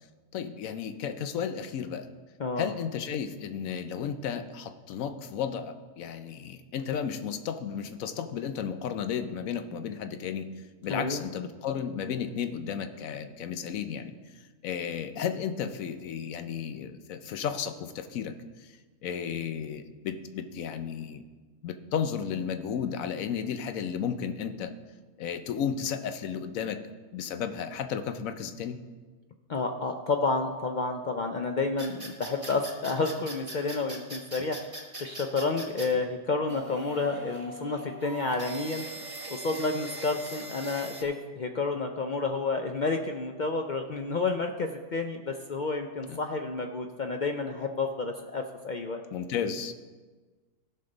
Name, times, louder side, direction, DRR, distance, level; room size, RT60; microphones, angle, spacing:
voice 1, 0.3-2.1 2.6-14.1 14.6-21.2 21.6-24.7 25.2-26.8 27.1-28.8 46.1-46.2 49.1-49.7, left 7 dB, 90° left, 9 dB, 1.1 m, -33 dB
voice 2, 2.4-2.7 10.9-11.2 29.5-34.6 35.0-38.8 39.3-49.0, left 3 dB, 60° left, 4 dB, 0.5 m, -30 dB
sound 1, 31.8-35.9 36.5-41.0, right 1 dB, 20° right, 1.2 m, -41 dB
16.0 x 5.6 x 3.9 m, 1.3 s
omnidirectional pair, 1.4 m